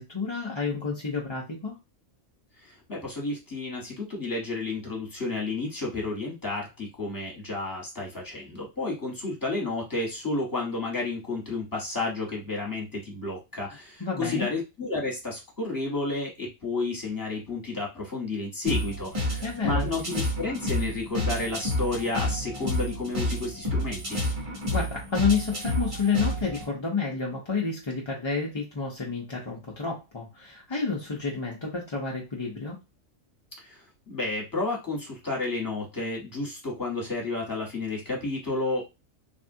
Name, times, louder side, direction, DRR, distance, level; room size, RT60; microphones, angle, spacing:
voice 1, 0.0-1.7 14.0-14.5 19.4-19.9 24.7-32.8, left 5 dB, 35° left, -3 dB, 0.5 m, -30 dB
voice 2, 2.6-24.2 33.6-38.9, left 3 dB, 15° left, -2 dB, 1.0 m, -31 dB
sound 1, 18.6-26.6, left 1 dB, 30° right, 0.8 m, -30 dB
3.4 x 2.3 x 2.6 m, 0.25 s
omnidirectional pair, 1.3 m